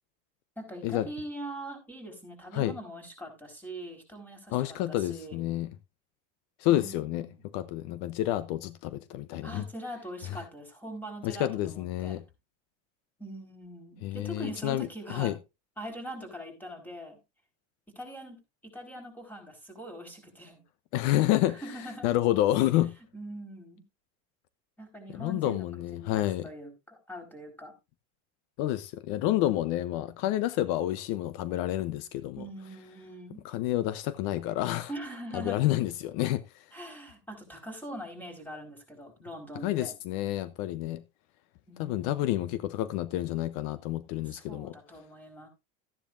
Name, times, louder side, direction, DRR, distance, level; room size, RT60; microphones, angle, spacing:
voice 1, 0.6-5.4 6.7-7.4 9.4-12.2 13.2-15.4 15.8-17.2 17.9-20.6 21.5-22.1 23.1-23.8 24.8-25.7 25.9-27.7 32.4-33.4 34.9-35.6 36.7-39.9 41.7-42.4 44.2-45.5, right 1 dB, 5° left, 4.3 m, -42 dB
voice 2, 4.5-5.7 6.6-7.3 7.5-9.6 11.2-12.2 14.0-15.4 20.9-21.6 22.0-22.9 25.1-26.5 28.6-32.4 33.4-34.9 35.3-36.7 39.6-41.0 41.8-44.7, left 14 dB, 70° left, 0.8 m, -29 dB
13.5 x 10.0 x 2.6 m
supercardioid pair, 125°, 35 cm